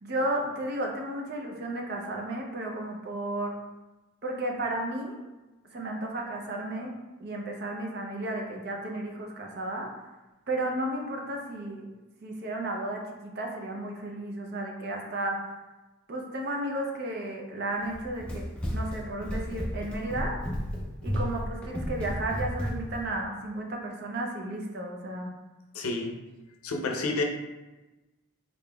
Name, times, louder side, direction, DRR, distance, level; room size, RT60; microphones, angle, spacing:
voice 1, 0.0-3.6 4.2-5.2 5.7-6.9 7.2-9.9 10.5-11.9 12.2-15.5 16.1-18.4 18.7-20.4 21.0-25.3, right 1 dB, 45° right, 1 dB, 0.5 m, -33 dB
Run, 17.8-23.0, equal, 5° left, 0.4 m, -33 dB
voice 2, 25.7-26.1 26.6-27.2, left 3 dB, 75° left, 2 dB, 0.5 m, -29 dB
3.8 x 3.5 x 2.2 m, 1.1 s
head